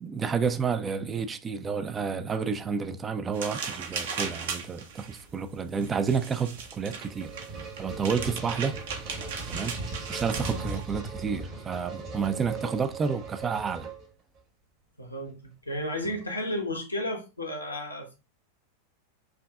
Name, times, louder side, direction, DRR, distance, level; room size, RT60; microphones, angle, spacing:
voice 1, 0.0-7.3 7.8-8.8 9.5-9.8 10.1-13.9, right 6 dB, 20° right, 0.3 m, -30 dB
sound 1, 3.3-10.8, right 5 dB, 55° right, 0.7 m, -37 dB
sound 2, 6.6-14.4, right 3 dB, 40° right, 1.1 m, -38 dB
voice 2, 10.3-10.7 12.6-12.7 15.0-15.3 15.7-18.2, left 1 dB, 85° left, 1.0 m, -33 dB
4.9 x 2.6 x 2.3 m
figure-of-eight pair, 90°, 0 cm